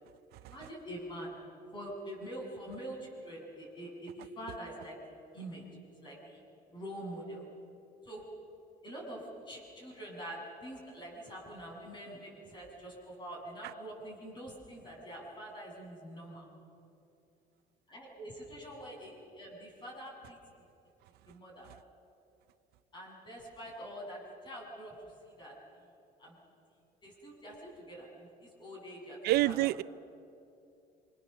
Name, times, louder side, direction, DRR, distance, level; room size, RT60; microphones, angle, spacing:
voice 1, 0.4-1.3 1.7-5.0 5.3-5.6 6.0-6.4 6.7-7.4 8.0-8.3 8.8-16.5 17.9-20.4 21.3-21.7 22.9-25.1 25.4-25.6 26.2-26.4 27.0-29.2 29.4-29.6, right 1 dB, 25° left, -1 dB, 7.2 m, -45 dB
voice 2, 29.2-29.8, right 17 dB, 70° right, 17 dB, 0.6 m, -26 dB
27.0 x 26.5 x 7.0 m, 2.6 s
cardioid pair, 150°, 17 cm